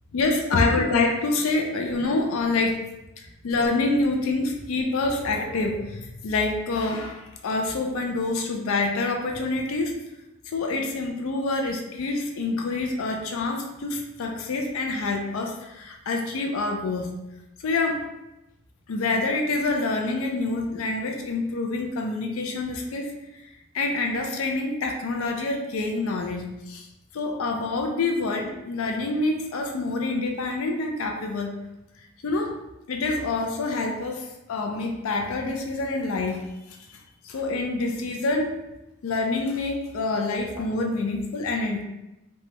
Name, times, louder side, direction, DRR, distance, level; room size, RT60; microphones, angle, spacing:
voice 1, 0.1-2.8 3.2-10.0 10.5-17.1 17.6-18.0 18.9-23.4 23.7-26.9 27.1-31.5 32.2-32.5 32.9-36.8 37.2-38.6 39.0-41.8, left 3 dB, 80° left, 2 dB, 0.4 m, -26 dB
3.1 x 2.2 x 2.9 m, 0.93 s
head